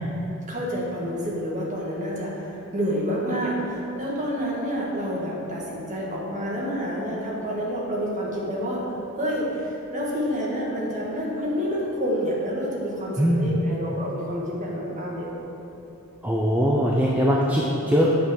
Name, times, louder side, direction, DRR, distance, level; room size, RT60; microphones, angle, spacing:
voice 1, 0.5-8.8 9.2-15.4, equal, 35° right, -5 dB, 1.8 m, -28 dB
voice 2, 13.2-13.6 16.2-18.1, equal, 5° right, -4 dB, 0.5 m, -21 dB
9.1 x 5.8 x 6.4 m, 3.0 s
head